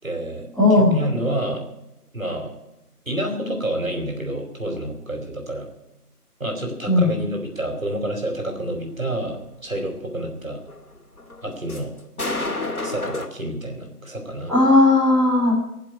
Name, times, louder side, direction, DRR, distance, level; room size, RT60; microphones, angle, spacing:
voice 1, 0.0-0.5 0.8-1.6 2.1-2.5 3.1-5.7 6.4-10.6 11.4-11.9 12.8-14.5, right 1 dB, 60° right, 3 dB, 4.6 m, -28 dB
voice 2, 0.6-1.0 6.9-7.1 14.5-15.5, left 2 dB, ahead, -13 dB, 1.5 m, -16 dB
sound 1, 10.7-13.3, left 2 dB, 65° left, 2.6 m, -29 dB
19.0 x 7.6 x 9.4 m, 0.90 s
figure-of-eight pair, 180°, 46 cm